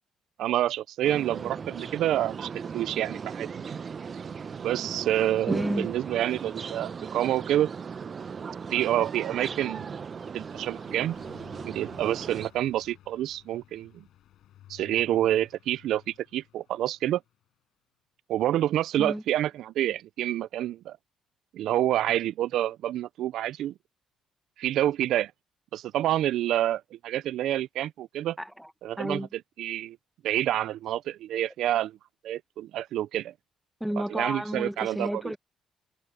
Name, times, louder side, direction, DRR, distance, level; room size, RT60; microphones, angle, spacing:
voice 1, 0.4-3.8 4.6-7.7 8.7-9.9 10.3-11.1 11.6-14.0 14.7-17.2 18.3-21.0 21.5-23.7 24.6-25.3 25.7-28.4 28.8-29.3 29.6-30.0 30.2-32.0 32.2-33.3 34.0-35.2, right 12 dB, 75° right, 0.5 m, -28 dB
sound 1, 1.0-12.5, right 6 dB, 45° right, 0.8 m, -37 dB
voice 2, 5.5-5.9 19.0-19.2 28.4-28.7 29.0-29.3 33.8-35.4, equal, 5° right, 1.5 m, -31 dB
Car passing by, 7.0-17.5, left 12 dB, 75° left, 7.7 m, -56 dB
supercardioid pair, 55°, 0 cm